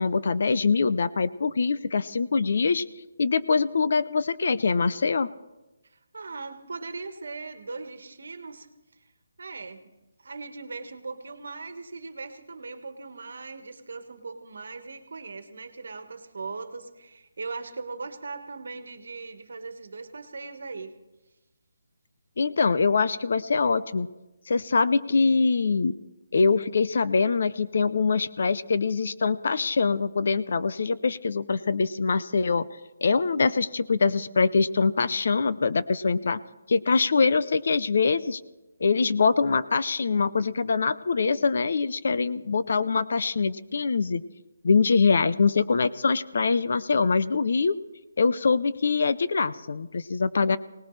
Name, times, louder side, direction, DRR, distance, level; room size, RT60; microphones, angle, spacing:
voice 1, 0.0-2.8 3.2-5.3 22.4-24.1 24.5-25.9 26.3-32.6 33.0-36.4 36.7-38.4 38.8-44.2 44.6-47.7 48.2-50.6, left 4 dB, 45° left, 15 dB, 0.5 m, -23 dB
voice 2, 5.9-8.7 9.4-9.9 10.2-20.9, right 4 dB, 60° right, 9 dB, 1.5 m, -39 dB
23.5 x 18.5 x 3.2 m, 1.0 s
hypercardioid pair, 180°, 0 cm